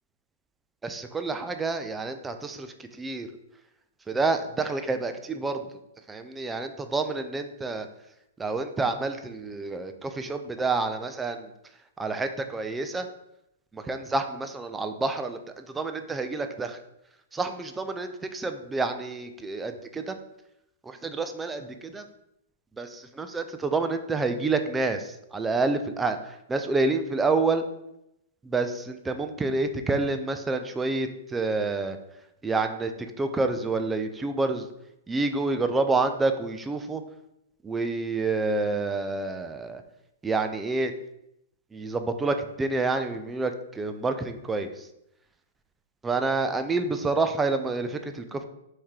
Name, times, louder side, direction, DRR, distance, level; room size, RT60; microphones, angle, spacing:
voice 1, 0.8-2.7 3.0-3.3 4.1-5.6 6.1-7.9 8.4-11.4 12.0-13.1 13.7-15.4 15.7-16.8 17.3-20.1 20.9-22.0 22.8-25.0 25.3-26.2 26.5-27.6 28.5-32.0 32.4-32.9 33.2-34.6 35.1-37.0 37.6-39.8 40.2-40.9 41.7-44.7 46.0-48.4, right 3 dB, 10° right, 7 dB, 0.3 m, -28 dB
3.6 x 3.2 x 4.3 m, 0.83 s
hypercardioid pair, 150°, 0 cm